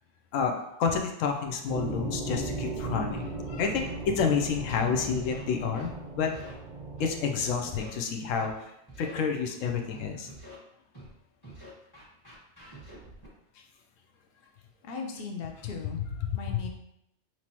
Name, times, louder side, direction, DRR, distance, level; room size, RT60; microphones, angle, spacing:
voice 1, 0.3-5.9 6.1-6.4 7.0-10.3 13.6-13.7 16.2-16.3, left 6 dB, 90° left, 3 dB, 1.0 m, -29 dB
sound 1, 1.7-7.8, right 2 dB, 30° right, 0.6 m, -37 dB
Scratching (performance technique), 3.1-3.3 3.6-3.9 4.4-5.4 5.7-5.9 6.2-6.5 7.0-7.9 8.4-8.5 8.9-9.1 9.6-10.6 10.9-11.1 11.4-13.3, right 1 dB, 20° left, 1.2 m, -47 dB
voice 2, 14.8-16.0 16.3-16.7, left 5 dB, 55° left, 2 dB, 0.8 m, -38 dB
5.4 x 3.0 x 2.9 m, 0.79 s
omnidirectional pair, 1.3 m